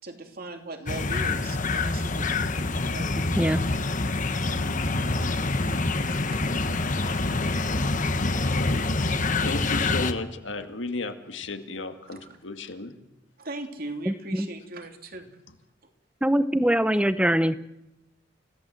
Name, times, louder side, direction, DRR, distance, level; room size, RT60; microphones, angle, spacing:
voice 1, 0.0-3.6 5.9-7.0 12.1-12.3 13.4-15.3, right 2 dB, 50° right, 5 dB, 2.8 m, -40 dB
sound 1, 0.9-10.1, left 3 dB, 45° left, 1.3 m, -26 dB
voice 2, 8.4-13.0, left 2 dB, 75° left, 7 dB, 2.0 m, -35 dB
voice 3, 14.1-14.5 16.2-17.6, equal, 5° right, 13 dB, 0.8 m, -23 dB
29.5 x 17.0 x 7.8 m, 0.95 s
head